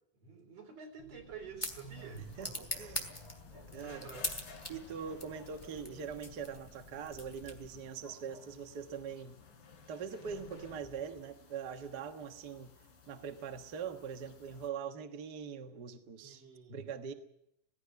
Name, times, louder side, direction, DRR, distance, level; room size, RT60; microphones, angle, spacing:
voice 1, 0.2-2.7 3.5-4.3 16.2-16.8, right 5 dB, 45° right, 5.0 m, -49 dB
sound 1, 1.0-7.9, left 1 dB, 15° left, 2.3 m, -44 dB
sound 2, 1.6-14.7, left 5 dB, 80° left, 4.7 m, -58 dB
voice 2, 2.2-3.1 3.7-4.1 4.7-9.4 9.9-12.7 13.1-16.4 16.7-17.1, right 7 dB, 70° right, 0.9 m, -42 dB
sound 3, 3.8-7.5 7.8-7.9 8.9-10.8, left 4 dB, 50° left, 1.2 m, -56 dB
17.0 x 17.0 x 9.6 m
omnidirectional pair, 4.0 m